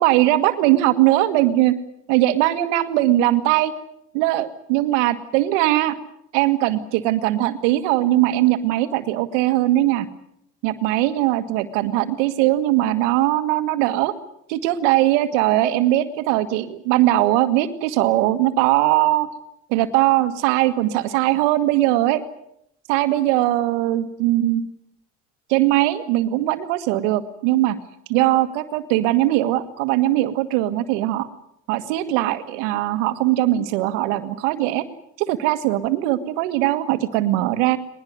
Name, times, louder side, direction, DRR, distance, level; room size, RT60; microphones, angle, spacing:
voice 1, 0.0-1.7 2.1-3.7 4.1-6.0 6.3-10.1 10.6-14.1 14.5-19.3 19.7-22.2 22.9-24.6 25.5-27.8 28.1-31.3 31.7-34.9 35.2-37.8, right 15 dB, 80° right, 11 dB, 1.8 m, -20 dB
20.5 x 20.0 x 9.4 m, 0.77 s
hypercardioid pair, 65°, 36 cm